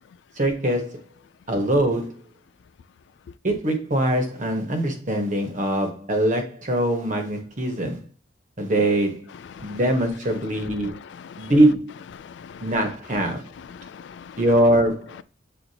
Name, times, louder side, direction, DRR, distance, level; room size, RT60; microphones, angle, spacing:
voice 1, 0.4-1.0 1.5-2.1 3.4-8.0 8.6-9.3 9.6-10.9 11.4-11.9 12.6-13.5 14.4-15.2, right 1 dB, 45° right, 1.3 m, -22 dB
voice 2, 9.4-9.8 10.6-11.5 12.4-12.8 13.6-14.4, left 7 dB, 70° left, 0.3 m, -42 dB
7.9 x 4.2 x 2.8 m
head